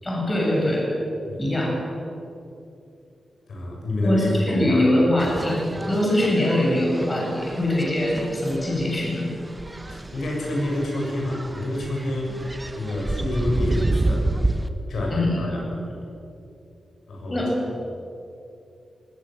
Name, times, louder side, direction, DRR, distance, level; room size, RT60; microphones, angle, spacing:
voice 1, 0.0-0.9 1.4-1.7 4.0-5.6 5.9-9.3 15.1-15.4 17.3-17.5, left 1 dB, 25° left, -3 dB, 7.1 m, -22 dB
voice 2, 3.5-4.8 9.9-14.3 14.9-16.0 17.1-17.9, left 1 dB, 85° left, -1 dB, 7.1 m, -28 dB
sound 1, 5.2-14.7, right 2 dB, 15° right, 1.3 m, -30 dB
20.0 x 19.0 x 7.7 m, 2.7 s
wide cardioid pair, 105°, 0 cm